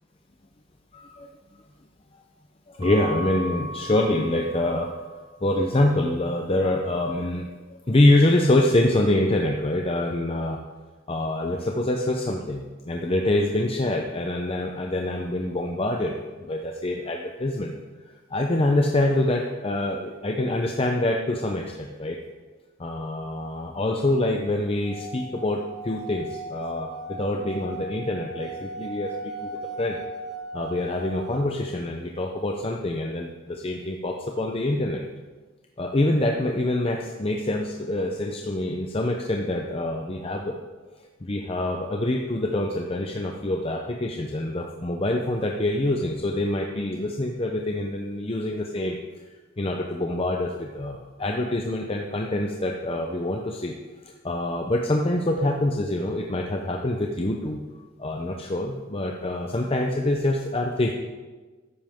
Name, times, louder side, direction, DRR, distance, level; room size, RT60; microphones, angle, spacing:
voice 1, 0.9-1.3 2.7-4.9 5.4-7.4 7.7-10.6 11.1-16.1 16.4-17.7 18.3-22.2 22.8-30.0 30.5-35.0 35.8-40.6 41.2-49.0 49.6-53.7 54.0-57.6 58.0-60.9, left 1 dB, 30° left, 2 dB, 0.7 m, -25 dB
Keyboard (musical) / Bell, 2.8-5.2, right 1 dB, 30° right, 1.6 m, -37 dB
Singing / Glass, 24.8-31.4, right 2 dB, ahead, 1.4 m, -38 dB
13.0 x 10.0 x 3.6 m, 1.3 s
head